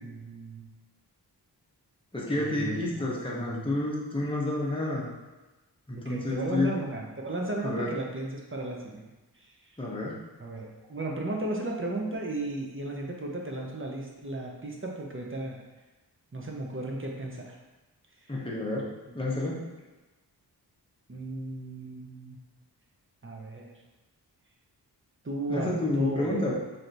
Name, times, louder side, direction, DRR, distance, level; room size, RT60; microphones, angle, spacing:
voice 1, 0.0-0.7 2.3-3.1 3.4-3.7 6.0-9.5 10.4-15.6 16.3-17.5 21.1-22.4 23.2-23.7 25.2-26.3, right 2 dB, 30° right, -1 dB, 0.7 m, -35 dB
voice 2, 2.1-5.1 5.9-6.7 7.6-7.9 9.8-10.2 18.3-18.9 19.1-19.7 25.5-26.5, left 2 dB, 15° left, -5 dB, 0.9 m, -29 dB
3.3 x 2.9 x 3.9 m, 1.2 s
wide cardioid pair, 60°, 41 cm